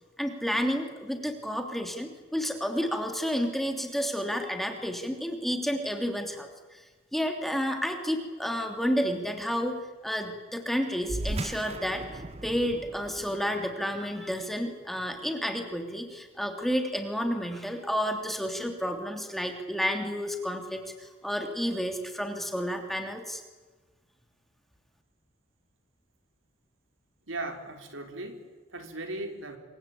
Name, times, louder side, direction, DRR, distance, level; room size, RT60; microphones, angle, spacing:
voice 1, 0.2-6.8 7.1-23.4, equal, ahead, 4 dB, 3.1 m, -31 dB
sound 1, 11.0-15.9, right 2 dB, 30° right, 0.8 m, -39 dB
voice 2, 27.3-29.6, right 2 dB, 75° right, 5 dB, 3.9 m, -38 dB
27.0 x 25.0 x 8.7 m, 1.3 s
head